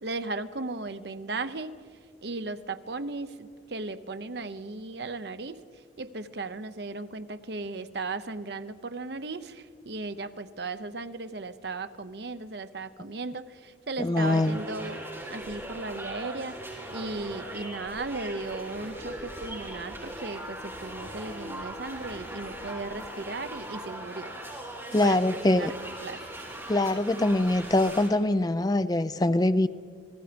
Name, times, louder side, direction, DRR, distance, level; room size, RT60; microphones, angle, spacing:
voice 1, 0.0-1.8 2.2-5.6 6.0-15.0 15.3-16.6 16.9-24.3 25.0-26.4, right 3 dB, 60° right, 11 dB, 0.8 m, -36 dB
voice 2, 14.0-14.6 24.9-25.7 26.7-29.7, left 1 dB, 20° left, 12 dB, 0.4 m, -23 dB
sound 1, 14.2-28.1, right 1 dB, 15° right, 5.6 m, -40 dB
29.5 x 19.5 x 5.2 m, 2.3 s
head